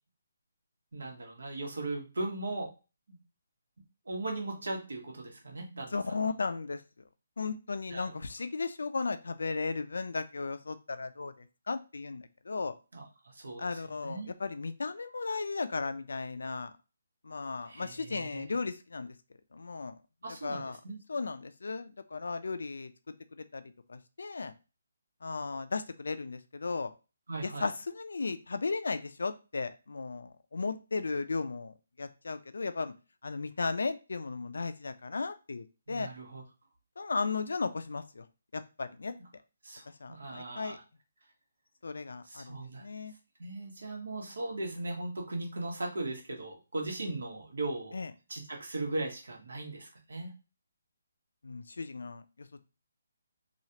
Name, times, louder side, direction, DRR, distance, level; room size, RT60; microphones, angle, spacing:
voice 1, 0.9-2.7 3.1-3.2 4.0-6.0 7.9-8.2 12.9-14.3 17.7-18.4 20.2-21.0 27.3-27.7 35.9-36.4 39.2-39.3 39.6-40.8 42.2-42.8 43.4-48.0 48.3-50.3, right 2 dB, 85° right, 1 dB, 1.2 m, -38 dB
voice 2, 5.9-6.8 7.4-12.7 13.6-16.7 17.2-19.1 19.5-20.0 20.4-20.8 21.1-23.6 23.9-24.5 25.2-26.9 27.4-32.9 33.2-36.1 37.0-38.3 38.5-39.1 40.0-40.8 41.8-43.1 47.9-48.1 51.4-52.6, left 4 dB, 80° left, 11 dB, 0.4 m, -35 dB
3.1 x 2.4 x 2.8 m, 0.31 s
hypercardioid pair, 175°, 0 cm